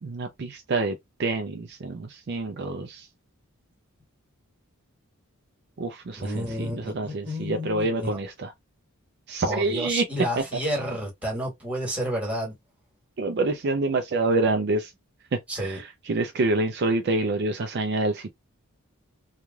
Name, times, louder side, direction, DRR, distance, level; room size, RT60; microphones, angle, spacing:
voice 1, 0.0-3.1 5.8-8.5 9.3-10.1 10.4-10.5 13.2-14.9 15.3-18.3, right 2 dB, 50° right, 0.4 m, -27 dB
voice 2, 6.2-8.2 9.5-12.5 15.5-15.8, equal, 5° right, 1.4 m, -30 dB
3.1 x 2.3 x 2.3 m
head